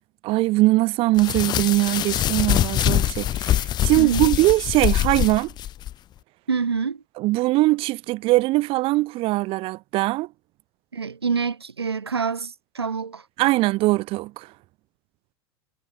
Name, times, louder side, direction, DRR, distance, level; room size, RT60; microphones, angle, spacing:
voice 1, 0.2-5.5 7.2-10.3 13.4-14.5, right 20 dB, 45° right, 2.6 m, -21 dB
sound 1, 1.2-5.9, left 12 dB, 35° left, 1.1 m, -24 dB
voice 2, 4.0-4.3 6.5-7.0 10.9-13.2, right 5 dB, 80° right, 6.2 m, -26 dB
figure-of-eight pair, 85°, 13 cm